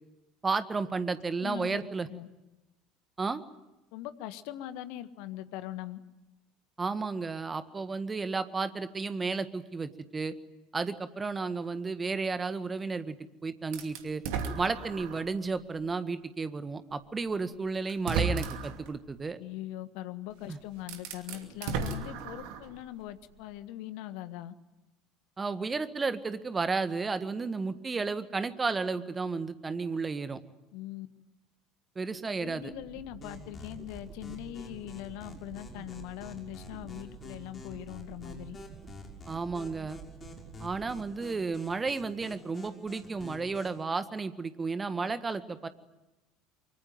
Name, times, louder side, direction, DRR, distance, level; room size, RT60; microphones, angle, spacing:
voice 1, 0.4-2.1 3.2-3.4 6.8-10.3 10.7-13.2 13.4-14.2 14.6-19.4 20.5-20.6 25.4-30.4 31.9-32.7 39.3-40.0 40.6-45.7, right 4 dB, 20° right, 12 dB, 1.7 m, -32 dB
voice 2, 1.4-2.3 3.9-6.0 19.4-24.5 30.7-31.1 32.2-38.6, left 14 dB, 60° left, 12 dB, 1.5 m, -41 dB
sound 1, 13.7-15.3 15.9-16.0 17.2-17.3 17.9-18.9 20.3-20.4 20.8-22.8, right 5 dB, 60° right, 2.6 m, -34 dB
sound 2, 32.2-41.8, right 8 dB, 40° right, 1.9 m, -50 dB
sound 3, 33.2-43.8, left 4 dB, 30° left, 5.9 m, -49 dB
24.5 x 24.0 x 9.4 m, 1.0 s
figure-of-eight pair, 65°, 0 cm